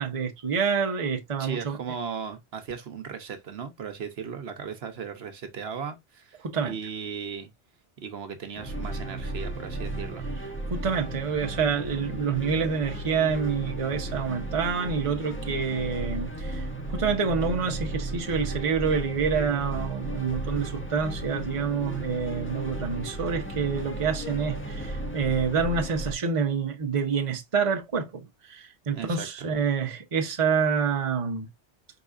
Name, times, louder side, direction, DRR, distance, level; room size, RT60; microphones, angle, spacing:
voice 1, 0.0-1.8 6.4-6.7 10.7-31.5, right 6 dB, 30° right, 0.8 m, -27 dB
voice 2, 1.4-7.5 8.0-10.2 28.9-29.5, right 6 dB, 65° right, 1.0 m, -37 dB
sound 1, 8.5-26.1, right 1 dB, 10° left, 0.8 m, -34 dB
4.7 x 3.9 x 2.4 m
omnidirectional pair, 1.2 m